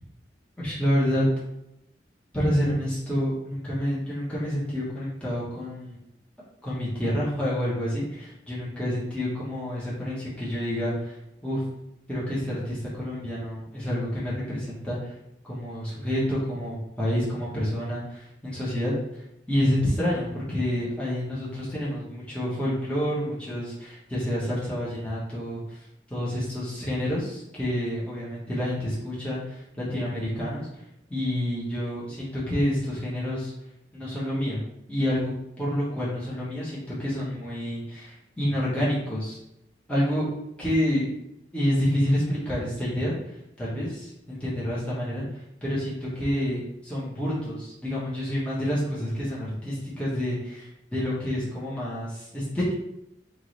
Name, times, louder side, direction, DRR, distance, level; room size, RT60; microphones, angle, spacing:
voice 1, 0.6-1.3 2.3-6.0 6.6-11.2 11.4-11.6 12.1-15.1 15.4-25.8 26.1-30.8 31.1-33.5 33.9-34.6 34.9-35.3 35.6-39.4 39.9-40.3 40.6-41.1 41.5-52.7, equal, 5° left, -8 dB, 1.2 m, -28 dB
4.5 x 2.7 x 3.2 m, 0.83 s
head